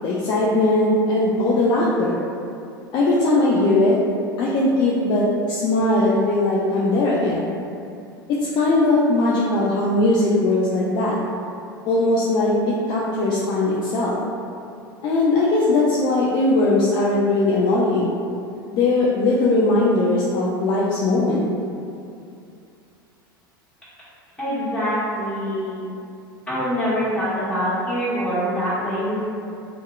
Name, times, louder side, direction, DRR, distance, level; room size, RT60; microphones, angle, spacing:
voice 1, 0.0-2.2 2.9-4.0 4.4-7.5 8.4-11.1 11.9-14.2 15.0-18.2 18.7-21.4, left 2 dB, 40° left, -5 dB, 0.3 m, -19 dB
voice 2, 24.4-25.9 26.5-29.2, equal, 10° left, -12 dB, 1.3 m, -24 dB
2.7 x 2.4 x 2.2 m, 2.6 s
figure-of-eight pair, 80°, 12 cm